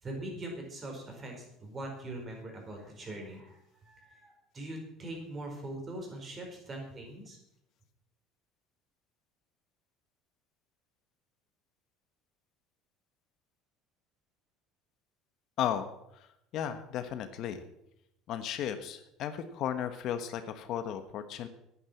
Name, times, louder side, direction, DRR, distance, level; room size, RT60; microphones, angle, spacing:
voice 1, 0.0-7.4, right 1 dB, 30° right, 2 dB, 4.6 m, -42 dB
voice 2, 15.6-15.9 16.5-17.6 18.3-21.5, left 9 dB, 55° left, 9 dB, 1.2 m, -34 dB
10.0 x 9.7 x 7.4 m, 0.81 s
cardioid pair, 120°, 0 cm